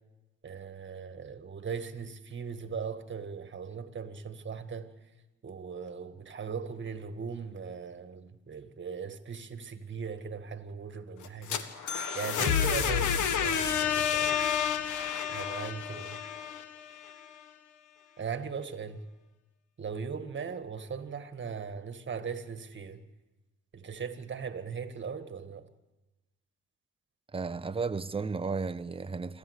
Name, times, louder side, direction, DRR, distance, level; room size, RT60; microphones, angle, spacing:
voice 1, 0.4-4.9 5.4-14.4 15.3-16.2 18.2-19.0 19.8-23.0 23.7-25.7, right 6 dB, 40° right, 1.9 m, -39 dB
sound 1, 11.2-17.1, left 8 dB, 80° left, 1.6 m, -29 dB
voice 2, 27.3-29.4, right 4 dB, 20° right, 0.9 m, -33 dB
26.5 x 13.0 x 8.2 m
cardioid pair, 90°, 30 cm